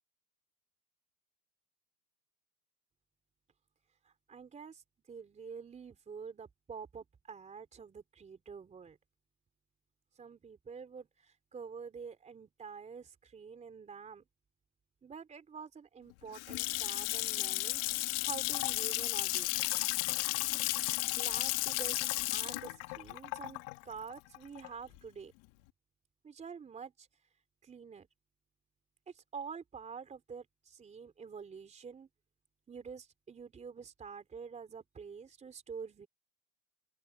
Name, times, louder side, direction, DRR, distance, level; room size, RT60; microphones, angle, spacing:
voice 1, 4.0-9.0 10.1-14.2 15.0-19.5 20.5-25.3 26.2-27.1 27.6-28.1 29.1-32.1 32.7-36.1, right 6 dB, 15° right, 3.9 m, -47 dB
Water tap faucet / Sink (filling or washing) / Splash splatter, 16.1-25.0, left 24 dB, 55° left, 2.3 m, -34 dB
open air
supercardioid pair, 155°, 45 cm